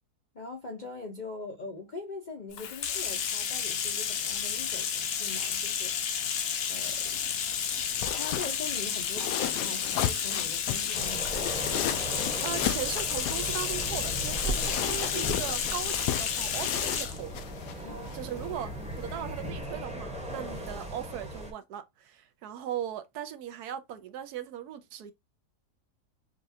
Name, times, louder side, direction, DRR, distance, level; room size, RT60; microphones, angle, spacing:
voice 1, 0.3-7.3 8.1-11.8 17.8-18.3, left 3 dB, 45° left, 0.6 m, -42 dB
Bathtub (filling or washing), 2.5-17.2, left 8 dB, 65° left, 1.0 m, -31 dB
sound 1, 6.9-19.5, left 11 dB, 85° left, 1.2 m, -36 dB
sound 2, 10.9-21.5, right 1 dB, 5° right, 0.8 m, -38 dB
voice 2, 12.4-17.3 17.6-25.1, right 10 dB, 75° right, 1.1 m, -38 dB
5.2 x 2.4 x 2.6 m
omnidirectional pair, 1.7 m